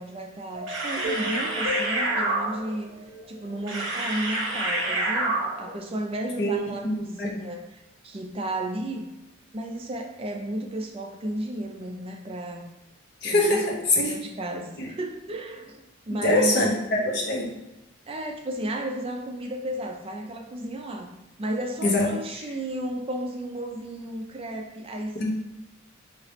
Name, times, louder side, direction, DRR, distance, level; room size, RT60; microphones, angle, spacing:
voice 1, 0.0-2.9 3.3-9.1 9.5-12.7 13.2-13.7 14.0-16.8 18.1-21.1 21.4-25.4, right 1 dB, 25° right, 2 dB, 0.4 m, -33 dB
sound 1, 0.5-5.8, right 2 dB, 60° right, 0.9 m, -28 dB
voice 2, 6.4-7.4 13.2-14.1 14.8-14.9 16.2-17.5 21.8-22.1 25.2-25.4, left 1 dB, 50° left, 0 dB, 0.7 m, -24 dB
3.2 x 2.8 x 2.9 m, 0.99 s
head